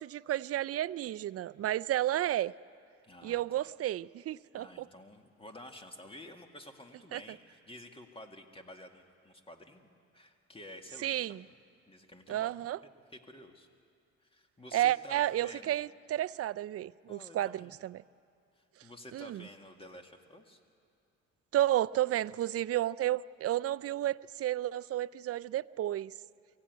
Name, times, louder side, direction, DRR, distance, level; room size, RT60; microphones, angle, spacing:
voice 1, 0.0-2.5 3.2-4.9 7.1-7.2 11.0-11.4 12.3-12.8 14.7-18.0 19.1-19.5 21.5-26.1, right 13 dB, 50° right, 0.4 m, -32 dB
voice 2, 3.0-3.7 4.5-9.9 10.1-11.6 11.9-12.7 13.1-13.7 14.2-15.8 17.1-17.8 18.6-20.6, left 1 dB, 20° left, 1.9 m, -51 dB
23.0 x 15.5 x 9.4 m
cardioid pair, 90°, 30 cm